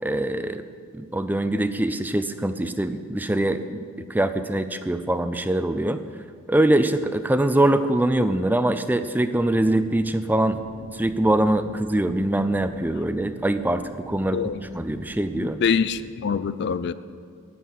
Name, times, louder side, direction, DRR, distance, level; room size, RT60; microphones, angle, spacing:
voice 1, 0.0-0.6 0.9-3.8 4.1-6.0 6.5-10.6 10.9-15.6, right 1 dB, 10° right, 9 dB, 0.4 m, -23 dB
sound 1, 9.3-16.2, equal, 85° left, 2.6 m, -45 dB
voice 2, 15.4-16.9, left 6 dB, 55° left, 14 dB, 0.4 m, -25 dB
10.5 x 9.2 x 8.0 m, 2.1 s
head